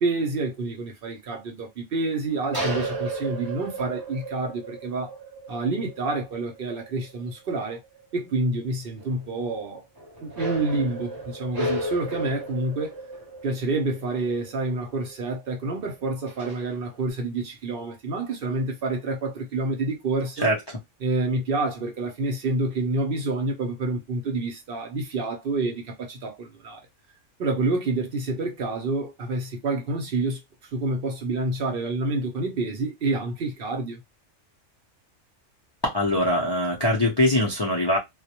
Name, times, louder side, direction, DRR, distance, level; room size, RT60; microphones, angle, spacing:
voice 1, 0.0-5.2 5.5-7.8 8.1-9.8 10.2-13.0 13.4-20.5 21.0-26.8 27.4-30.4 30.7-34.0, right 2 dB, 55° right, 0.7 m, -28 dB
sound 1, 2.3-7.2 7.6-7.7 7.8-8.0 9.0-9.2 10.0-15.1 15.8-15.9 16.3-17.0, right 1 dB, 20° right, 0.7 m, -34 dB
voice 2, 20.4-20.8 35.8-38.0, left 1 dB, 45° left, 0.3 m, -22 dB
2.2 x 2.1 x 2.8 m
omnidirectional pair, 1.3 m